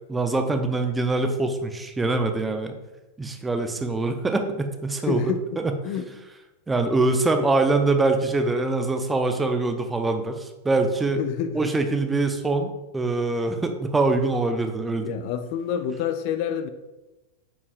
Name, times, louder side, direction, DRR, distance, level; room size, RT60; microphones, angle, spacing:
voice 1, 0.1-2.7 3.2-5.7 6.7-11.2 11.5-15.2, right 3 dB, 10° right, 0.7 m, -24 dB
voice 2, 5.0-5.6 5.8-6.1 11.2-11.7 15.0-16.7, left 8 dB, 45° left, 0.4 m, -28 dB
9.1 x 5.5 x 2.4 m
figure-of-eight pair, 90°, 0 cm